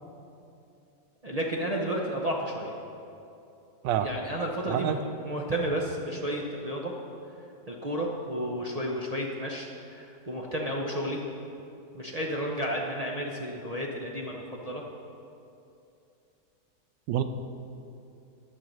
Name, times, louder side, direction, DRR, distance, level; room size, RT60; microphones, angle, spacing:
voice 1, 1.2-2.7 4.0-5.0 5.2-6.9 7.7-11.2 11.9-14.8, equal, 50° right, -1 dB, 0.4 m, -32 dB
voice 2, 4.7-5.0 17.1-17.2, right 10 dB, 90° right, 9 dB, 1.3 m, -27 dB
10.5 x 6.7 x 6.3 m, 2.7 s
omnidirectional pair, 1.9 m